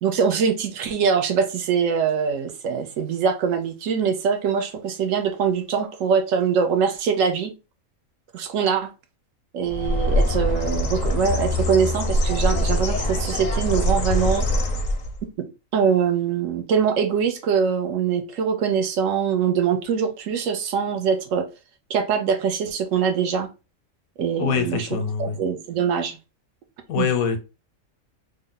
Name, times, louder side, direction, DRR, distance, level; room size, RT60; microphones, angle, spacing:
voice 1, 0.0-7.5 8.3-8.9 9.5-14.4 15.4-15.5 15.7-21.5 21.9-23.5 24.2-24.9 25.2-26.2 27.0-27.1, right 6 dB, 70° right, 1.0 m, -23 dB
Bird, 9.6-15.2, left 1 dB, 50° left, 0.5 m, -23 dB
voice 2, 24.4-25.4 26.9-27.4, left 7 dB, 90° left, 1.1 m, -24 dB
3.4 x 2.1 x 3.7 m
omnidirectional pair, 1.4 m